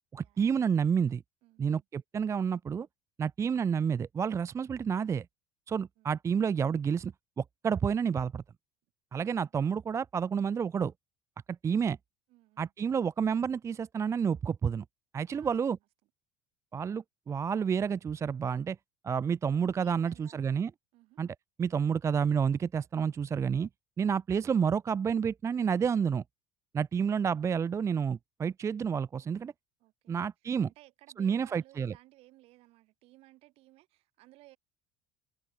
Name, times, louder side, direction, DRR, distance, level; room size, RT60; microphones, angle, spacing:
voice 1, 0.1-1.2 1.6-2.9 3.2-5.3 5.7-8.4 9.1-10.9 11.5-12.0 12.6-14.8 15.1-15.8 16.7-18.8 19.0-20.7 21.2-23.7 24.0-26.2 26.7-29.5 30.1-30.7 31.2-31.9, right 7 dB, 25° right, 0.4 m, -30 dB
voice 2, 1.4-1.8 6.0-6.1 9.2-9.4 12.3-12.7 15.3-15.5 19.8-20.4 20.9-21.3 29.8-30.3 30.7-34.6, right 19 dB, 60° right, 3.4 m, -59 dB
hypercardioid pair, 65°, 11 cm